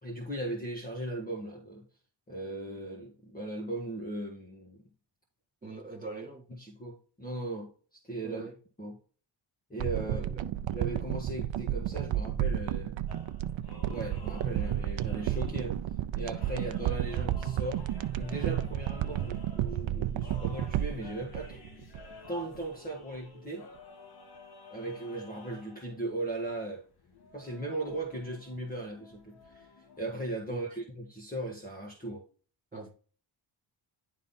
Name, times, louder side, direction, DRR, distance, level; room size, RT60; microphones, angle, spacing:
voice 1, 0.0-1.8 2.3-4.8 6.6-7.7 8.0-8.4 8.8-8.9 9.7-10.2 10.7-13.0 13.8-15.8 16.2-17.8 18.2-21.6 22.3-23.7 24.7-26.8 27.3-29.7 30.0-32.2, right 2 dB, 20° left, 1.7 m, -37 dB
voice 2, 5.6-6.5 8.2-8.5 10.0-10.4 30.5-30.6 32.7-32.9, right 3 dB, 15° right, 3.9 m, -42 dB
sound 1, 9.8-22.3 22.6-22.7, right 11 dB, 70° right, 0.6 m, -32 dB
sound 2, 13.1-30.2, left 3 dB, 50° left, 1.8 m, -53 dB
11.0 x 3.9 x 4.2 m
wide cardioid pair, 135°, 47 cm